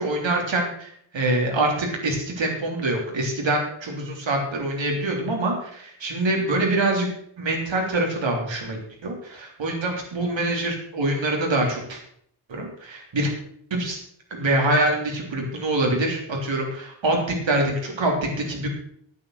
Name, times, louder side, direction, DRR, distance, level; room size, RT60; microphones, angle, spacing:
voice 1, 0.0-7.1 7.4-12.0 12.5-13.3 13.7-14.0 14.3-18.7, right 2 dB, 70° right, 0 dB, 3.5 m, -25 dB
9.4 x 9.2 x 6.6 m, 0.66 s
wide cardioid pair, 170°, 47 cm